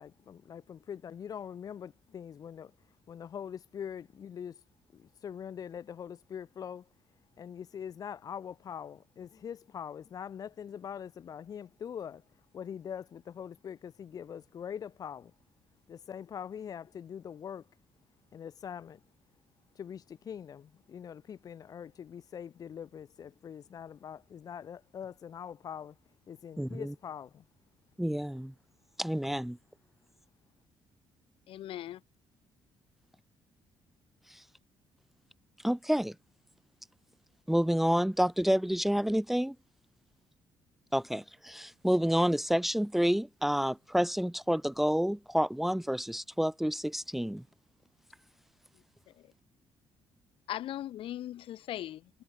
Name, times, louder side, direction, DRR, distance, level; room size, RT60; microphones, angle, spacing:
voice 1, 0.0-2.7 3.1-4.6 4.9-6.9 7.4-12.2 12.5-15.3 15.9-17.7 18.3-19.0 19.7-25.9 26.3-27.4, left 8 dB, 40° left, 1.3 m, -43 dB
voice 2, 26.6-26.9 28.0-28.5 29.0-29.6 34.3-34.4 35.6-36.1 37.5-39.5 40.9-47.4, equal, ahead, 1.1 m, -29 dB
voice 3, 31.5-32.0 49.2-49.3 50.5-52.1, left 13 dB, 70° left, 2.9 m, -39 dB
cardioid pair, 160°, 9 cm